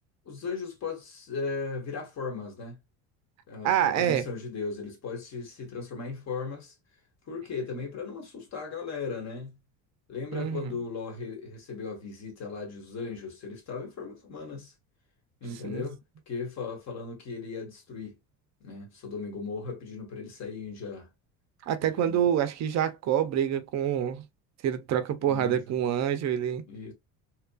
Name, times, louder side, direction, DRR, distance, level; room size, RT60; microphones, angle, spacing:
voice 1, 0.2-2.8 3.5-6.7 7.3-9.6 10.1-14.7 15.4-15.9 16.3-18.2 18.6-21.1 22.0-22.2 25.2-25.6 26.7-26.9, left 4 dB, 45° left, 1.3 m, -37 dB
voice 2, 3.6-4.2 10.3-10.6 15.6-15.8 21.7-24.2 24.6-26.6, right 9 dB, 45° right, 0.5 m, -26 dB
2.8 x 2.4 x 2.2 m
supercardioid pair, 105°, 38 cm